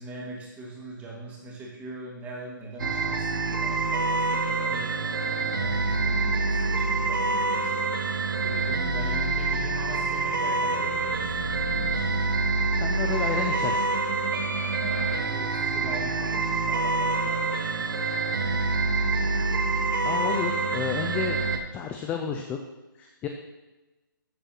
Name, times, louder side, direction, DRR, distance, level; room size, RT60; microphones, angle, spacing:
voice 1, 0.0-7.7 8.4-12.1 13.0-13.6 14.8-18.6, right 2 dB, 10° right, -3 dB, 2.3 m, -41 dB
sound 1, 2.8-21.6, right 3 dB, 65° right, 1.5 m, -26 dB
voice 2, 12.8-13.9 20.0-21.4 21.7-22.6 23.0-23.3, left 6 dB, 10° left, 4 dB, 0.5 m, -31 dB
13.5 x 5.4 x 5.9 m, 1.1 s
hypercardioid pair, 155°, 12 cm